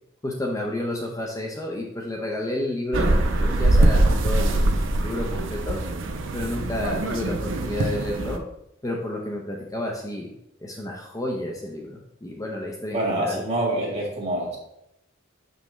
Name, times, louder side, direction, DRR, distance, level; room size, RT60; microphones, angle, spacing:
voice 1, 0.2-5.8 6.3-8.4 8.8-10.3 10.6-13.4, left 1 dB, 15° left, -1 dB, 0.6 m, -31 dB
sound 1, 2.9-8.4, right 1 dB, 65° right, 0.6 m, -22 dB
voice 2, 12.9-14.6, right 1 dB, 35° right, -4 dB, 1.9 m, -26 dB
6.0 x 5.4 x 3.1 m, 0.83 s
head